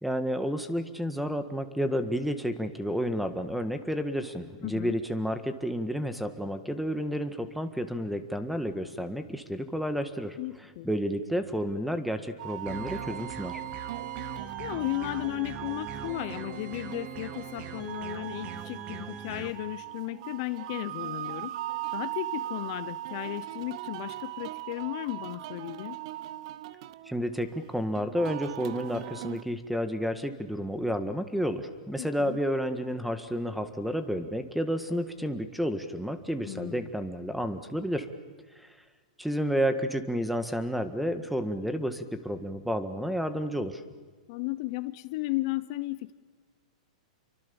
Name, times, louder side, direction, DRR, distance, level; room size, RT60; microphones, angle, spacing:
voice 1, 0.0-10.4 10.8-13.6 27.1-38.1 38.6-38.7 39.2-43.8, equal, ahead, 10 dB, 1.7 m, -31 dB
voice 2, 4.6-5.0 10.4-10.9 14.6-21.5 21.9-26.0 32.0-32.4 36.5-36.9 44.3-46.1, left 19 dB, 50° left, 14 dB, 0.9 m, -35 dB
sound 1, 12.4-29.4, right 15 dB, 55° right, 1.0 m, -39 dB
sound 2, 12.7-19.5, right 6 dB, 35° right, 2.6 m, -41 dB
29.0 x 24.0 x 7.2 m, 1.5 s
hypercardioid pair, 135°, 4 cm